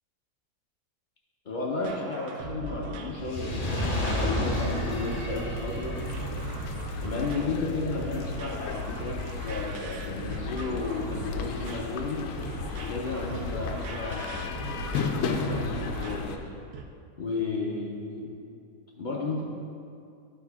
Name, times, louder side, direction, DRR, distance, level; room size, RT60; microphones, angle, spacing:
voice 1, 1.5-6.0 7.0-12.2 12.8-14.4 15.2-16.4 17.2-18.3 19.0-19.4, left 3 dB, 55° left, -1 dB, 0.5 m, -33 dB
sound 1, 1.8-16.3 16.7-16.8, right 3 dB, 90° right, 1.1 m, -39 dB
Fire, 3.1-9.5 10.2-10.3, left 1 dB, 30° left, 0.9 m, -32 dB
sound 2, 6.0-16.4, left 5 dB, 70° left, 0.9 m, -34 dB
9.3 x 3.6 x 4.7 m, 2.4 s
omnidirectional pair, 1.6 m